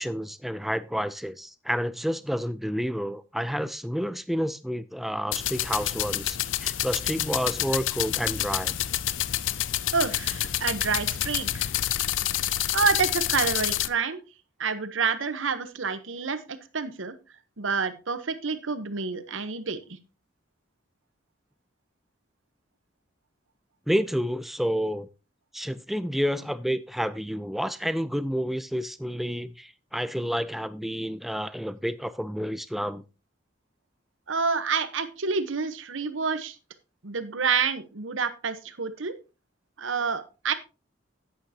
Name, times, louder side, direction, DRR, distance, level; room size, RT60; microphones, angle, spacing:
voice 1, 0.0-8.8 23.9-25.1 25.5-33.0, equal, ahead, 14 dB, 0.4 m, -29 dB
sound 1, 5.3-13.9, left 13 dB, 75° left, 0.5 m, -28 dB
voice 2, 9.9-11.7 12.7-14.2 14.6-16.4 16.7-17.1 17.6-19.8 34.3-36.6 37.0-39.1 39.8-40.5, right 5 dB, 85° right, 11 dB, 1.0 m, -28 dB
11.5 x 9.2 x 2.8 m, 0.30 s
head